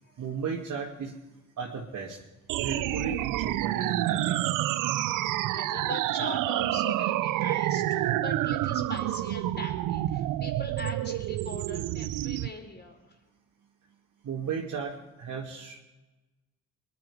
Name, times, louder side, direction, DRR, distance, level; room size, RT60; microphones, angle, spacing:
voice 1, 0.2-1.2 1.6-2.2 2.6-4.4 14.2-15.8, right 6 dB, 70° right, -3 dB, 2.4 m, -35 dB
sound 1, 2.5-12.5, right 14 dB, 85° right, 0.6 m, -28 dB
voice 2, 5.5-13.2, left 2 dB, 35° left, 3 dB, 4.8 m, -41 dB
21.5 x 11.0 x 5.1 m, 1.1 s
supercardioid pair, 50°, 31 cm